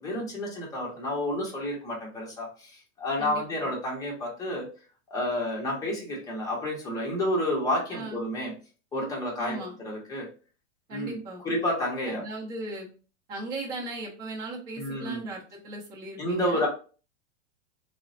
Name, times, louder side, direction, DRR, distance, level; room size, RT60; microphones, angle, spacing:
voice 1, 0.0-4.7 5.1-8.5 8.9-10.3 10.9-11.2 11.4-12.2 14.8-15.3 16.2-16.7, left 1 dB, 10° left, -3 dB, 0.8 m, -30 dB
voice 2, 3.2-3.7 7.9-8.2 9.4-9.8 10.9-11.4 12.1-12.9 13.3-16.7, right 2 dB, 25° right, -5 dB, 0.8 m, -37 dB
3.7 x 2.1 x 2.6 m, 0.38 s
supercardioid pair, 150°, 37 cm